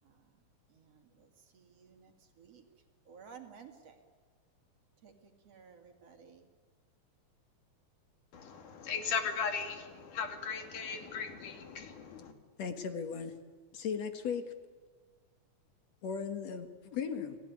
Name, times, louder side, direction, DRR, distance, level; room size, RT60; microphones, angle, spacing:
voice 1, 0.7-1.3 1.5-2.1 2.4-2.6 3.1-4.0 5.0-5.1 5.5-6.4, right 6 dB, 55° right, 3.2 m, -54 dB
voice 2, 8.3-12.3, left 6 dB, 80° left, 3.9 m, -37 dB
voice 3, 12.6-13.3 13.7-14.5 16.0-17.4, left 6 dB, 60° left, 2.6 m, -37 dB
29.5 x 18.5 x 9.7 m
omnidirectional pair, 3.5 m